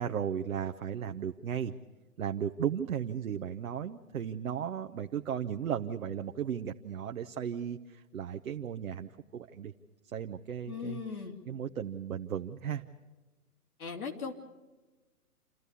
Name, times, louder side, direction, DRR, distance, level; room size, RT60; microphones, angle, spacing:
voice 1, 0.0-1.7 2.2-9.7 10.1-11.0 11.5-12.8, right 8 dB, 65° right, 6 dB, 0.9 m, -35 dB
voice 2, 10.7-11.4 13.8-14.3, left 6 dB, 65° left, 2 dB, 3.1 m, -38 dB
28.0 x 13.5 x 8.3 m, 1.2 s
hypercardioid pair, 135°, 46 cm